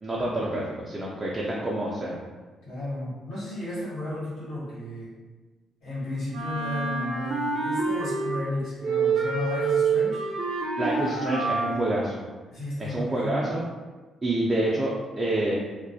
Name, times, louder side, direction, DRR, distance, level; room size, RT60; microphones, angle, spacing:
voice 1, 0.0-2.2 10.8-12.2 12.8-13.6 14.2-15.5, right 1 dB, 20° right, -5 dB, 0.4 m, -28 dB
voice 2, 2.6-5.1 5.8-10.2 12.5-13.5, left 1 dB, 85° left, -11 dB, 1.3 m, -33 dB
Wind instrument woodwind instrument, 6.3-8.5 8.8-11.9, right 4 dB, 90° right, 0.5 m, -27 dB
2.3 x 2.0 x 2.6 m, 1.3 s
cardioid pair, 90°, 0 cm